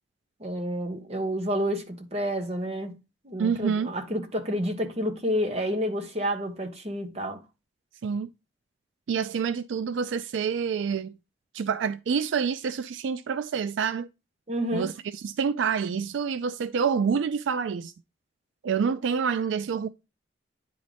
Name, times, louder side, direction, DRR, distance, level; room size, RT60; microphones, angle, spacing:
voice 1, 0.4-3.0 3.2-7.4 14.5-14.9, equal, 35° right, 1.2 m, -29 dB
voice 2, 3.4-3.9 8.0-8.3 9.1-11.2 11.5-14.1 14.7-17.9 18.6-19.9, right 6 dB, 80° right, 0.4 m, -27 dB
9.8 x 3.9 x 3.4 m
head